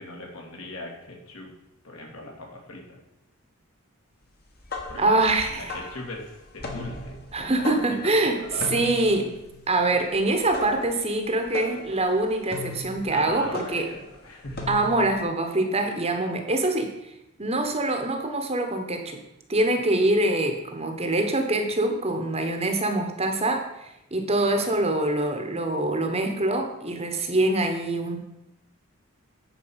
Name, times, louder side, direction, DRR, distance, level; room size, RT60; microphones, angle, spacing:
voice 1, 0.0-1.5 1.8-3.0 4.9-5.2 5.5-8.8 13.1-14.7 24.5-24.8, left 2 dB, 65° left, -1 dB, 2.5 m, -40 dB
sound 1, 4.4-15.2, left 3 dB, 45° left, 1.5 m, -38 dB
voice 2, 5.0-5.8 7.3-9.3 9.7-13.9 14.7-16.9 17.4-19.2 19.5-28.2, right 2 dB, 25° right, 5 dB, 1.1 m, -24 dB
10.0 x 4.6 x 7.3 m, 0.87 s
head